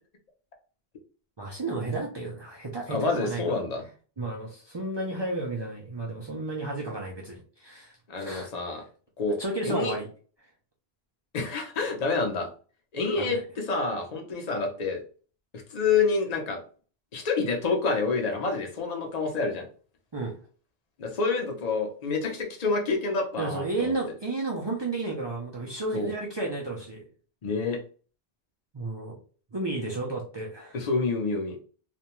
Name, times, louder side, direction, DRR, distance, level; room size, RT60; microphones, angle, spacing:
voice 1, 1.4-3.4 4.2-8.5 9.4-10.1 13.2-13.3 20.1-20.4 23.4-27.0 28.7-29.2 29.5-30.8, right 2 dB, 40° right, -3 dB, 0.4 m, -32 dB
voice 2, 2.9-3.8 8.1-8.8 9.2-9.4 9.6-9.9 11.3-12.5 12.9-15.0 15.7-16.6 17.1-19.6 21.0-23.9 25.9-26.1 27.4-27.8 30.7-31.6, left 4 dB, 45° left, 2 dB, 0.7 m, -28 dB
2.5 x 2.2 x 2.9 m, 0.40 s
omnidirectional pair, 1.1 m